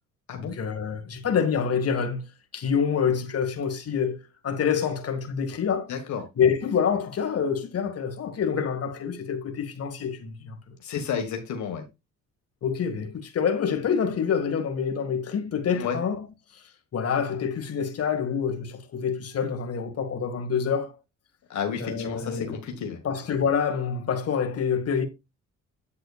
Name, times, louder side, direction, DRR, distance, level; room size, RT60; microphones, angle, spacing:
voice 1, 0.3-2.3 2.5-4.2 4.4-5.9 6.4-10.6 12.6-16.2 16.5-16.6 16.9-21.0 21.8-22.6 23.0-25.1, left 7 dB, 50° left, 1.7 m, -27 dB
voice 2, 5.9-6.2 10.8-11.8 15.7-16.0 21.5-23.0, left 7 dB, 65° left, 1.6 m, -31 dB
8.4 x 7.7 x 2.4 m
supercardioid pair, 70°, 31 cm